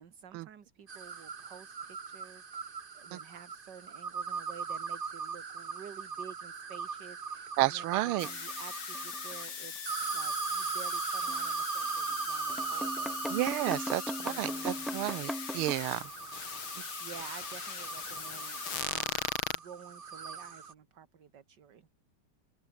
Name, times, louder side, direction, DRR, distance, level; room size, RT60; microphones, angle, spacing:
voice 1, 0.0-13.4 14.2-14.9 17.0-21.9, right 8 dB, 55° right, 2.2 m, -51 dB
sound 1, 0.9-9.5 9.9-20.7, right 5 dB, 35° right, 1.0 m, -39 dB
voice 2, 7.6-8.3 13.3-16.1, right 17 dB, 90° right, 1.5 m, -31 dB
sound 2, 8.2-19.6, left 7 dB, 75° left, 3.0 m, -40 dB
sound 3, 8.2-9.5 9.8-9.9 11.3-11.5 12.1-12.2 12.5-15.8, equal, ahead, 1.3 m, -39 dB
omnidirectional pair, 2.3 m